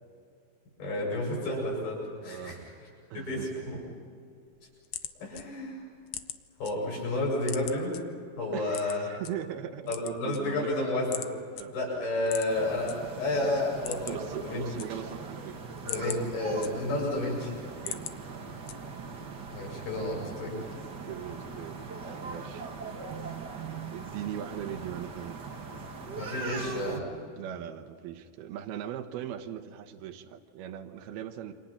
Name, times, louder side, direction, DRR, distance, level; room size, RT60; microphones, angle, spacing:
voice 1, 0.8-2.6 3.1-3.8 5.2-5.9 6.6-7.9 8.4-9.1 9.9-11.3 11.7-14.7 15.8-17.5 19.5-20.6 26.2-27.1, left 2 dB, 65° left, -3 dB, 9.6 m, -31 dB
voice 2, 2.2-2.6 3.1-3.5 8.5-10.7 11.6-11.7 14.0-15.6 15.9-16.3 17.8-18.5 21.0-21.8 22.2-22.7 23.1-25.4 27.4-31.5, right 10 dB, 75° right, 8 dB, 3.1 m, -39 dB
sound 1, 4.5-6.7 7.1-8.0 8.7-9.3 9.8-10.8 11.1-11.3 11.6-11.7 12.2-13.0 13.3-13.4 13.7-14.3 14.6-15.3 15.7-17.1 17.5-18.2 18.7-19.1, left 10 dB, 90° left, 1.6 m, -39 dB
sound 2, 12.5-27.0, right 4 dB, 40° right, 1.5 m, -41 dB
28.5 x 26.5 x 5.9 m, 2.3 s
omnidirectional pair, 4.6 m